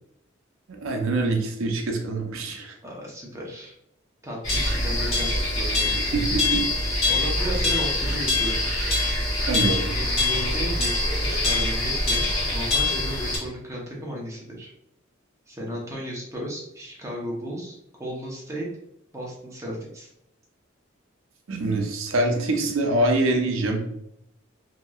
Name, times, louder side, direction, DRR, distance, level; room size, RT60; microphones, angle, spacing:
voice 1, 0.8-2.7 6.0-6.6 7.0-7.1 9.5-9.9 21.5-23.8, right 2 dB, 75° right, 2 dB, 0.6 m, -25 dB
voice 2, 2.8-3.7 4.2-6.0 7.1-8.6 10.0-14.7 15.5-18.7 19.1-20.1, right 1 dB, 15° right, -3 dB, 0.7 m, -34 dB
sound 1, 4.4-13.4, left 2 dB, 85° left, 1.3 m, -24 dB
2.9 x 2.7 x 2.3 m, 0.78 s
head